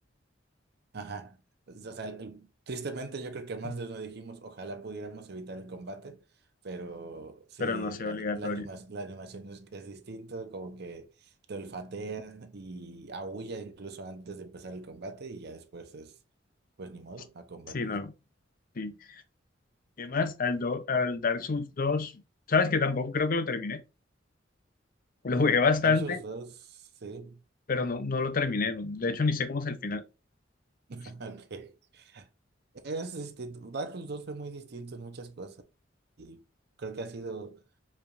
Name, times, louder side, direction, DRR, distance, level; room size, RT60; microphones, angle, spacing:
voice 1, 0.9-1.4 1.7-6.2 6.6-16.1 16.8-18.0 25.8-27.4 30.9-32.3 32.8-35.6 36.2-36.4 36.8-37.6, right 3 dB, 60° right, 0.7 m, -40 dB
voice 2, 7.6-8.7 17.7-18.1 18.8-18.9 20.0-22.1 22.5-23.8 25.2-26.2 27.7-30.0, left 4 dB, 50° left, 0.6 m, -28 dB
4.8 x 3.4 x 2.4 m
head